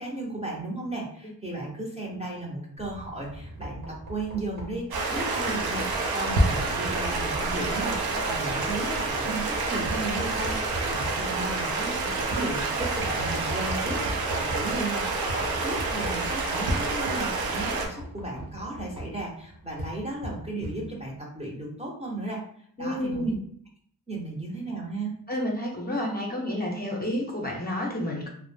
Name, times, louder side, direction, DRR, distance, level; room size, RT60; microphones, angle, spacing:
voice 1, 0.0-22.4 22.8-23.3 24.1-25.1, right 2 dB, 15° right, -2 dB, 0.6 m, -35 dB
Knock, 2.8-21.2, equal, 65° right, 1.0 m, -41 dB
Stream, 4.9-17.9, right 3 dB, 80° right, 0.6 m, -28 dB
voice 2, 22.8-23.3 25.3-28.3, left 1 dB, 25° left, -2 dB, 0.6 m, -30 dB
2.4 x 2.0 x 3.3 m, 0.64 s
cardioid pair, 80°, 36 cm